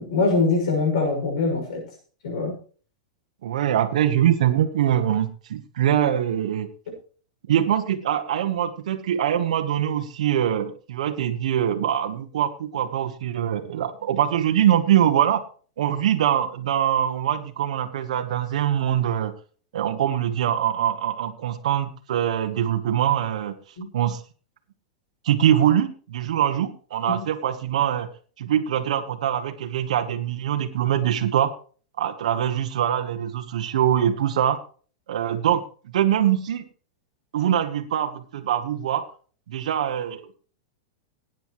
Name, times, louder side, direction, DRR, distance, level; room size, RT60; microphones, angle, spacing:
voice 1, 0.0-1.8 2.2-2.5 23.8-23.9 27.1-27.2, left 3 dB, 80° left, 2 dB, 6.1 m, -23 dB
voice 2, 3.4-6.7 7.5-15.4 15.8-19.3 19.7-23.5 23.9-24.2 25.2-28.1 28.4-31.5 32.0-34.6 35.1-35.6 35.9-36.6 37.3-39.1 39.5-40.3, right 10 dB, 80° right, 6 dB, 1.2 m, -23 dB
19.0 x 9.2 x 3.1 m, 0.41 s
supercardioid pair, 155°, 4 cm